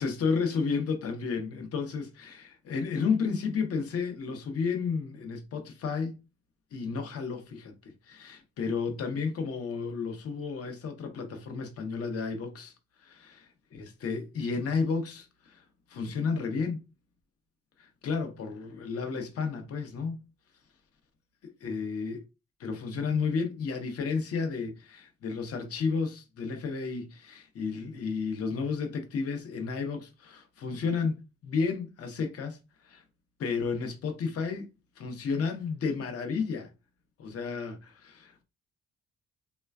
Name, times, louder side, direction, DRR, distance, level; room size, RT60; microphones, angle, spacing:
voice 1, 0.0-6.1 6.7-12.7 13.0-13.3 13.7-16.8 17.8-20.2 21.4-22.2 22.6-33.0 33.4-34.7 35.0-36.7 37.2-38.4, left 5 dB, 50° left, 0.7 m, -32 dB
3.2 x 2.2 x 2.3 m
cardioid pair, 90°, 30 cm